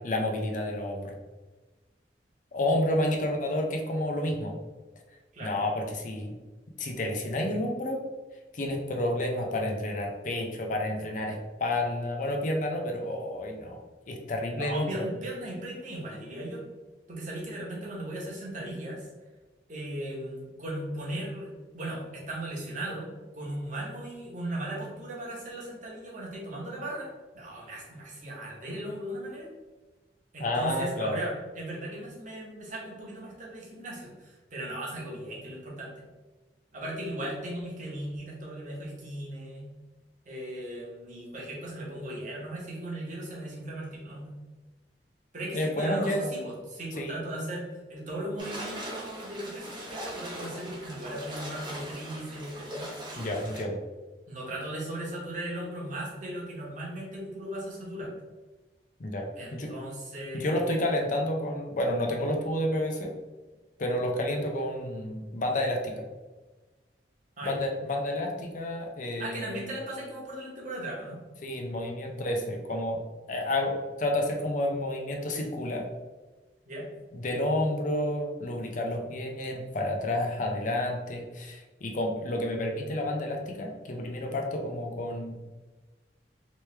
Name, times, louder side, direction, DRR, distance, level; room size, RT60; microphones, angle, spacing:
voice 1, 0.0-1.1 2.5-4.5 5.4-6.4 6.8-8.0 8.5-13.8 14.1-14.9 30.4-31.2 45.5-46.3 47.0-47.5 53.2-53.8 59.0-59.3 59.5-59.7 60.3-63.1 63.8-66.0 67.4-69.6 71.4-73.0 73.3-75.8 77.1-85.4, left 1 dB, 45° left, 2 dB, 0.5 m, -30 dB
voice 2, 14.5-16.6 17.1-19.1 19.7-23.1 23.3-27.1 27.3-29.5 30.3-35.9 36.7-39.7 40.2-44.3 45.3-52.8 54.3-58.1 59.3-60.8 67.4-67.6 69.2-71.2 76.7-76.9, right 1 dB, 45° right, -4 dB, 1.2 m, -37 dB
sound 1, 48.4-53.6, equal, 25° right, 1.0 m, -40 dB
3.2 x 3.0 x 3.3 m, 1.2 s
head